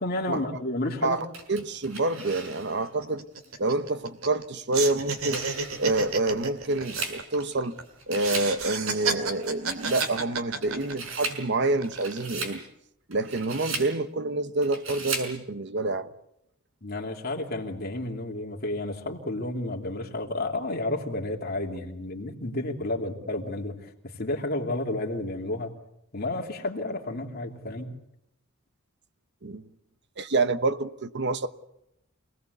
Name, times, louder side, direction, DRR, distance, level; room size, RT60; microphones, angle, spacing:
voice 1, 0.0-1.2 16.8-25.7 26.1-27.9, left 2 dB, 45° left, 3.0 m, -31 dB
voice 2, 1.0-3.2 3.6-5.4 5.8-7.8 8.1-12.6 13.1-16.1 29.4-29.6 30.2-31.5, right 2 dB, 55° right, 1.1 m, -27 dB
sound 1, 1.3-2.9 3.4-3.5 4.7-7.7 8.0-8.6 8.9-10.2 10.6-11.4 11.8-12.6 13.1-13.9 14.6-15.3, right 4 dB, 70° right, 5.6 m, -36 dB
sound 2, 1.9-2.0 2.3-2.5 2.8-4.5 4.7-7.8 8.2-11.3 11.8-12.3, right 5 dB, 85° right, 2.7 m, -32 dB
26.5 x 18.5 x 8.2 m
head